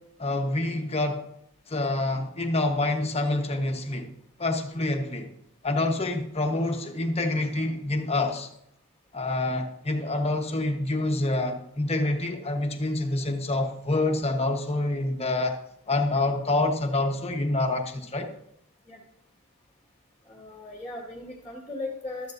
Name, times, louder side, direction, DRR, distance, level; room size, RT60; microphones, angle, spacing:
voice 1, 0.2-1.2 1.7-4.1 4.4-5.3 5.6-8.5 9.1-15.6 15.9-18.3, left 2 dB, 30° left, 4 dB, 1.2 m, -27 dB
voice 2, 20.3-22.3, left 2 dB, 5° left, -1 dB, 1.9 m, -37 dB
13.5 x 12.5 x 2.7 m, 0.76 s
head